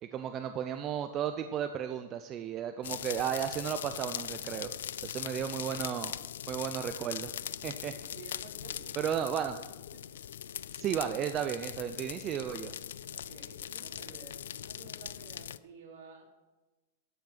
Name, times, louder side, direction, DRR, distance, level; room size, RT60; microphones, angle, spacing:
voice 1, 0.0-4.7 5.0-6.2 6.5-7.3 7.6-7.9 9.0-9.6 10.7-12.7, right 9 dB, 25° right, 8 dB, 0.4 m, -34 dB
sound 1, 2.8-15.6, left 10 dB, 90° left, 0.3 m, -41 dB
voice 2, 8.1-9.3 9.9-10.0 10.7-10.8 13.1-16.2, right 4 dB, 60° right, -1 dB, 3.0 m, -53 dB
12.0 x 5.4 x 6.0 m, 1.1 s
supercardioid pair, 155°, 0 cm